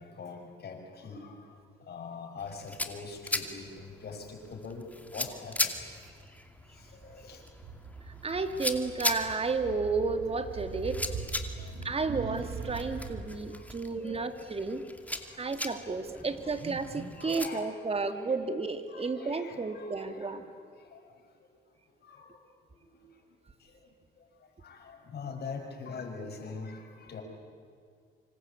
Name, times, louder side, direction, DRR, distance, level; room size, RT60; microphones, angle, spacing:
voice 1, 0.0-1.4 1.8-5.7 6.7-7.4 11.5-11.7 12.9-13.0 13.5-14.3 15.2-15.7 17.2-18.3 18.9-20.5 20.7-21.0 22.0-22.4 22.8-23.0 23.6-23.7 24.6-27.2, left 4 dB, 55° left, 2 dB, 6.3 m, -44 dB
sound 1, 2.4-17.5, left 1 dB, 5° left, 2.5 m, -39 dB
sound 2, 6.8-13.2, right 5 dB, 90° right, 4.2 m, -41 dB
voice 2, 8.2-11.1 11.8-14.8 15.4-20.5, right 4 dB, 30° right, 8 dB, 2.5 m, -32 dB
26.0 x 25.5 x 8.6 m, 2.2 s
cardioid pair, 90°, 20 cm